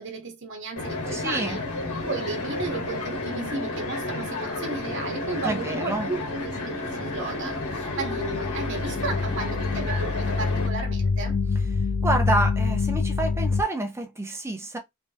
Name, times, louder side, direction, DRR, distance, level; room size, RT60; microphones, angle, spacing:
voice 1, 0.0-1.6 2.1-11.4, right 3 dB, 55° right, 1.2 m, -34 dB
sound 1, 0.8-10.7, left 2 dB, 80° left, 1.7 m, -32 dB
voice 2, 1.1-1.6 5.4-6.1 12.0-14.8, right 2 dB, 10° right, 0.8 m, -28 dB
sound 2, 7.6-13.6, left 4 dB, 55° left, 0.5 m, -26 dB
3.5 x 2.9 x 2.8 m
head